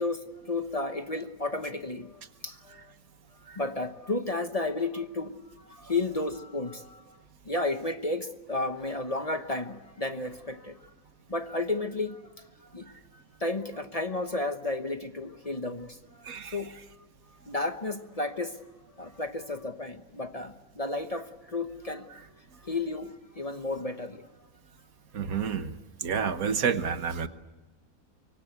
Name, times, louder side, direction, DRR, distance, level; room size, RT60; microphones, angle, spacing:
voice 1, 0.0-2.9 3.6-7.2 7.4-10.8 11.3-12.4 12.7-16.7 17.4-18.6 19.0-22.2 22.6-24.3, left 2 dB, 30° left, 8 dB, 1.0 m, -33 dB
voice 2, 16.3-16.6 25.1-25.7 26.0-27.3, right 6 dB, 85° right, 10 dB, 1.7 m, -29 dB
25.5 x 23.5 x 8.1 m, 1.1 s
omnidirectional pair, 1.5 m